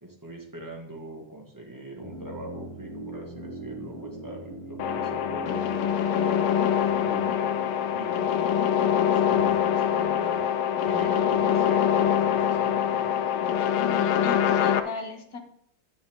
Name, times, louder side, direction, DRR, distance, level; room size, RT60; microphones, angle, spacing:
voice 1, 0.0-5.6 6.0-6.5 7.0-10.5 10.8-13.2, right 1 dB, 10° right, 0 dB, 1.9 m, -42 dB
sound 1, 2.0-8.0 8.2-8.3, right 1 dB, 15° left, 2.0 m, -41 dB
sound 2, 4.8-14.8, left 9 dB, 75° left, 1.6 m, -24 dB
voice 2, 13.9-15.4, left 4 dB, 50° left, 3 dB, 1.6 m, -37 dB
10.0 x 9.6 x 3.8 m, 0.70 s
omnidirectional pair, 2.3 m